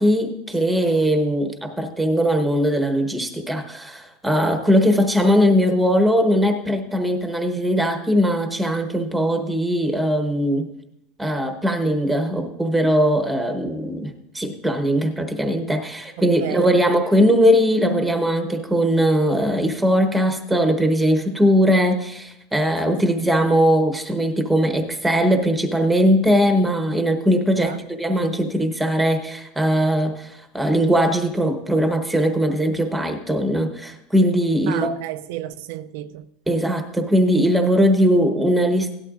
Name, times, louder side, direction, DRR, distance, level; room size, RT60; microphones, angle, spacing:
voice 1, 0.0-10.7 11.2-34.9 36.5-38.9, equal, ahead, 1.0 m, -20 dB
voice 2, 16.2-16.8 27.6-27.8 34.7-36.3, right 13 dB, 65° right, 0.4 m, -31 dB
17.0 x 11.5 x 2.5 m
supercardioid pair, 160°, 0 cm